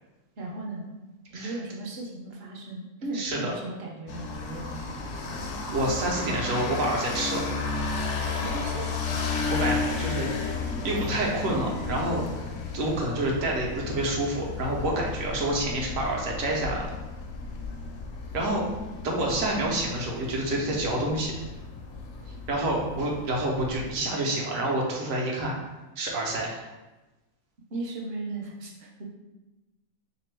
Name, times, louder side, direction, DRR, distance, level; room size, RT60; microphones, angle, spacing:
voice 1, 0.4-0.9 1.3-5.1 8.3-8.9 27.7-29.0, right 2 dB, 55° right, -2 dB, 0.8 m, -36 dB
voice 2, 3.1-3.5 5.7-8.0 9.5-10.6 10.8-12.4 12.7-16.9 18.3-18.6 19.0-21.3 22.5-25.5 26.0-26.6, right 1 dB, 75° right, -1 dB, 1.1 m, -28 dB
sound 1, 4.1-23.9, left 4 dB, 65° left, 0.8 m, -33 dB
3.6 x 3.0 x 3.2 m, 1.1 s
omnidirectional pair, 1.5 m